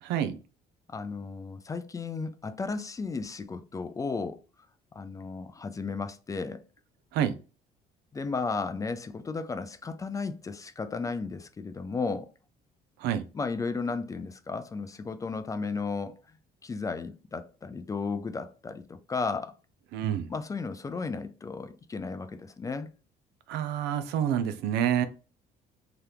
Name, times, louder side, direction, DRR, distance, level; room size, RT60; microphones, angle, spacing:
voice 1, 0.0-0.4 7.1-7.4 13.0-13.2 19.9-20.3 23.5-25.1, right 10 dB, 85° right, 0.5 m, -28 dB
voice 2, 0.9-4.4 4.9-6.6 8.1-12.3 13.3-16.2 16.6-19.5 20.3-22.9, left 4 dB, 20° left, 0.3 m, -34 dB
2.9 x 2.4 x 3.3 m
cardioid pair, 110°, 17 cm